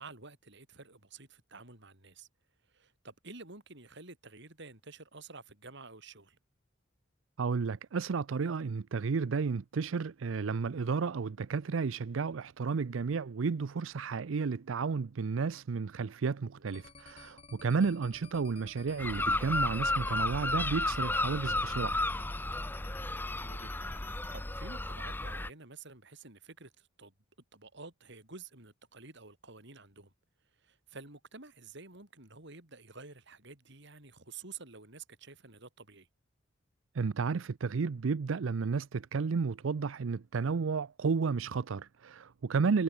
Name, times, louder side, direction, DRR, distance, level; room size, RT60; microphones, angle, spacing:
voice 1, 0.0-2.3 2.7-6.4 16.6-16.7 23.4-27.1 27.5-30.1 30.6-36.1, right 4 dB, 65° right, 5.6 m, -50 dB
voice 2, 7.4-22.0 36.9-42.8, right 5 dB, 80° right, 0.5 m, -32 dB
sound 1, 16.7-24.4, left 4 dB, 30° left, 3.2 m, -54 dB
sound 2, 19.0-25.5, left 2 dB, 10° left, 0.7 m, -33 dB
head